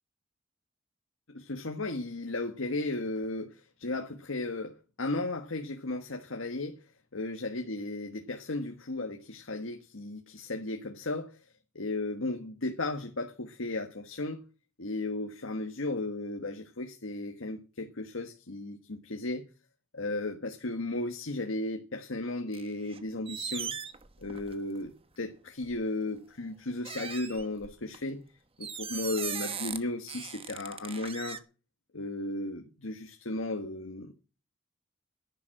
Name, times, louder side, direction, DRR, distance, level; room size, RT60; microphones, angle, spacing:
voice 1, 1.3-6.8 7.1-11.4 11.7-14.4 14.8-19.5 19.9-23.7 24.2-28.2 28.6-31.4 31.9-34.1, left 2 dB, 90° left, 1.5 m, -35 dB
sound 1, 22.5-23.0 23.3-24.8 25.6-25.8 26.8-28.0 28.6-29.8 30.1-31.4, right 7 dB, 30° right, 1.0 m, -38 dB
11.0 x 10.5 x 7.6 m
head